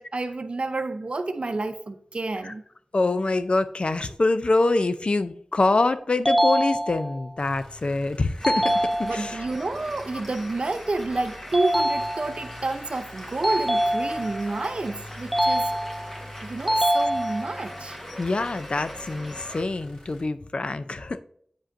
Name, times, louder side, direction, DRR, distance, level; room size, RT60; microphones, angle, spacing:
voice 1, 0.0-2.6 9.0-15.7 16.4-18.0, right 2 dB, 65° right, 0.6 m, -29 dB
voice 2, 2.9-9.4 18.2-21.2, left 2 dB, 60° left, 0.4 m, -25 dB
sound 1, 6.3-7.3 8.4-9.4 11.5-12.6 13.4-14.5 15.3-16.2 16.7-17.7, equal, 5° right, 0.4 m, -24 dB
sound 2, 7.4-20.2, left 1 dB, 45° left, 1.7 m, -45 dB
sound 3, 8.4-19.6, equal, 10° left, 1.1 m, -42 dB
8.4 x 5.1 x 2.6 m
wide cardioid pair, 65°, 2 cm